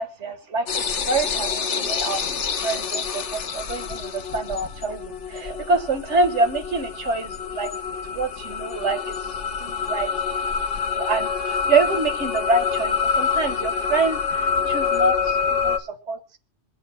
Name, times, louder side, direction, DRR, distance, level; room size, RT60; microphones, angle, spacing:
voice 1, 0.0-2.3 2.6-7.7 8.1-9.3 9.6-10.1 10.8-16.4, right 3 dB, 80° right, 7 dB, 1.8 m, -26 dB
sound 1, 0.7-15.8, left 6 dB, 75° left, 1.3 m, -26 dB
26.5 x 8.9 x 2.2 m, 0.31 s
omnidirectional pair, 1.2 m